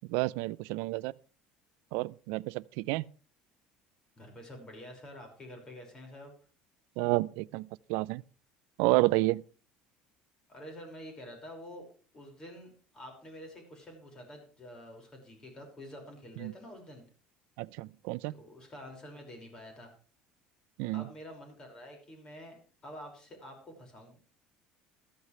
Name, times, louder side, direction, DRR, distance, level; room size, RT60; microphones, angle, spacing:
voice 1, 0.1-1.1 1.9-3.0 7.0-8.2 8.8-9.4 16.4-16.5 17.6-18.3 20.8-21.0, right 21 dB, 85° right, 0.5 m, -30 dB
voice 2, 4.2-6.3 10.5-11.9 12.1-17.0 18.3-19.9 20.9-24.1, equal, 25° left, 5.5 m, -48 dB
14.0 x 14.0 x 3.3 m
cardioid pair, 155°, 3 cm